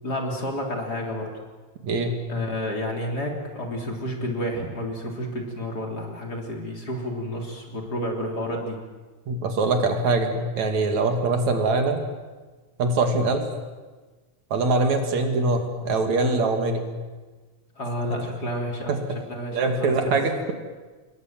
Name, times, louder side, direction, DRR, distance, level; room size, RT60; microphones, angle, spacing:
voice 1, 0.0-1.3 2.3-8.8 17.8-19.0 19.3-20.2, left 1 dB, 30° left, 1 dB, 4.1 m, -30 dB
voice 2, 1.8-2.2 9.3-12.0 12.8-13.5 14.5-16.9 18.9-19.0 19.5-20.5, right 3 dB, 70° right, 5 dB, 3.7 m, -23 dB
27.5 x 21.5 x 7.6 m, 1.3 s
omnidirectional pair, 3.3 m